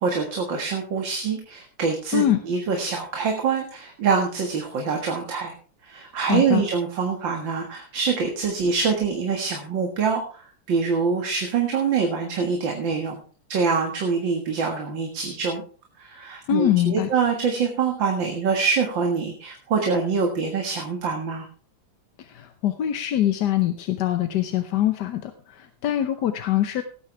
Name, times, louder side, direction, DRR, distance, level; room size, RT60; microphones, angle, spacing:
voice 1, 0.0-5.5 5.8-10.4 10.7-13.2 13.5-15.6 16.0-21.5, right 5 dB, 60° right, 2 dB, 2.3 m, -25 dB
voice 2, 6.2-6.6 16.5-17.1 22.2-26.8, left 12 dB, 60° left, 8 dB, 1.3 m, -23 dB
17.0 x 9.5 x 3.3 m, 0.38 s
omnidirectional pair, 2.3 m